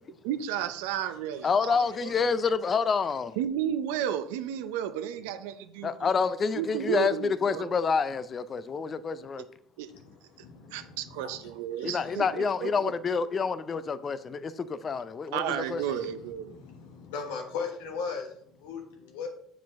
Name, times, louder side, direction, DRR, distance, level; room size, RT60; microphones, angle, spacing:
voice 1, 0.2-2.1 3.4-6.1 6.5-7.7 9.4-9.5 9.8-9.9 10.7-12.9 15.3-16.5, right 10 dB, 85° right, 0.6 m, -33 dB
voice 2, 1.4-3.4 5.8-9.4 11.8-15.8, left 5 dB, 35° left, 0.5 m, -28 dB
voice 3, 9.9-11.5 11.8-12.1 15.5-19.3, left 5 dB, 85° left, 1.2 m, -39 dB
7.2 x 5.0 x 3.5 m
supercardioid pair, 90°, 0 cm